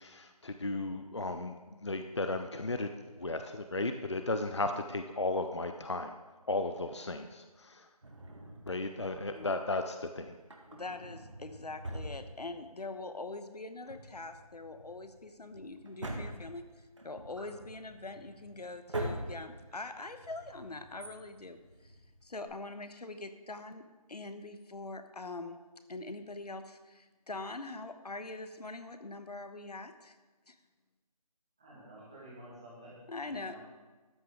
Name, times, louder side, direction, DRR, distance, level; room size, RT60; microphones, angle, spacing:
voice 1, 0.0-2.9 3.2-6.1 6.5-7.9 8.7-10.4, left 2 dB, 45° left, 7 dB, 0.5 m, -35 dB
Drawer open or close, 8.0-9.5 10.4-12.9 13.1-13.2 13.7-22.5, right 1 dB, 50° right, 1.8 m, -44 dB
voice 2, 10.7-16.6 17.0-21.9 22.2-25.6 25.9-30.1 30.5-30.6 33.1-33.6, left 2 dB, 80° left, 9 dB, 1.1 m, -43 dB
voice 3, 31.6-33.6, right 1 dB, 10° right, -8 dB, 1.5 m, -51 dB
13.0 x 8.9 x 3.7 m, 1.3 s
figure-of-eight pair, 175°, 20 cm